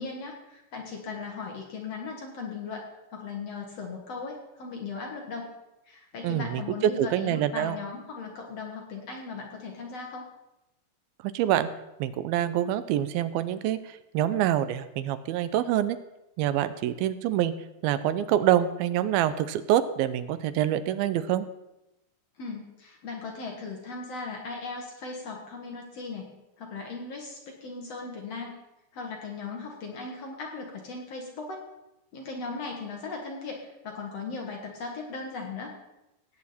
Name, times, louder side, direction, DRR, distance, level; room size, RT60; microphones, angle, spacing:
voice 1, 0.0-2.9 3.1-5.5 5.9-10.3 22.4-26.3 26.6-28.5 28.9-31.6 32.1-35.8, left 4 dB, 55° left, 1 dB, 2.1 m, -38 dB
voice 2, 6.2-7.8 11.3-11.7 12.0-16.0 16.4-17.5 17.8-21.5, right 11 dB, 85° right, 13 dB, 2.4 m, -26 dB
18.0 x 8.6 x 4.2 m, 0.93 s
omnidirectional pair, 4.3 m